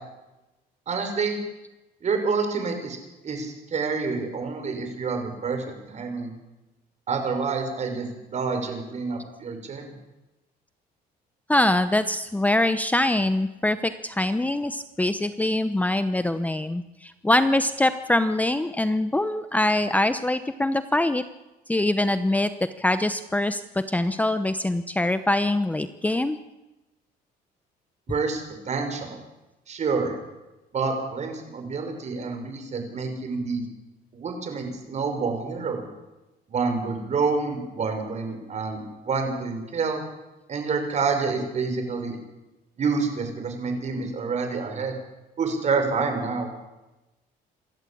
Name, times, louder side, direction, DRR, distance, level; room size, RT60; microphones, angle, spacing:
voice 1, 0.9-1.4 2.0-3.0 3.2-6.3 7.1-9.9 28.1-29.2 29.7-30.1 30.7-33.6 34.1-35.8 36.5-40.0 40.5-42.2 42.8-44.9 45.4-46.5, right 4 dB, 45° right, 5 dB, 5.6 m, -28 dB
voice 2, 11.5-21.2 21.7-22.5 22.8-26.4, left 1 dB, 10° left, 11 dB, 0.9 m, -23 dB
27.0 x 12.5 x 8.6 m, 1.0 s
cardioid pair, 110°, 17 cm